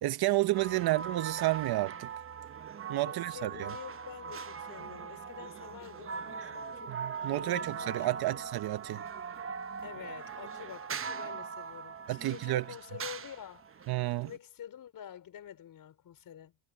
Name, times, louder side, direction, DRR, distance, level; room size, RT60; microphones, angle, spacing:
voice 1, 0.0-2.1 2.9-3.7 6.9-9.0 12.1-12.6 13.9-14.3, right 17 dB, 60° right, 1.0 m, -31 dB
sound 1, 0.5-14.4, right 6 dB, 30° right, 1.1 m, -41 dB
voice 2, 0.6-1.0 3.1-6.9 7.2-8.5 9.8-13.7 14.1-16.5, left 10 dB, 50° left, 5.5 m, -48 dB
cardioid pair, 120°, 43 cm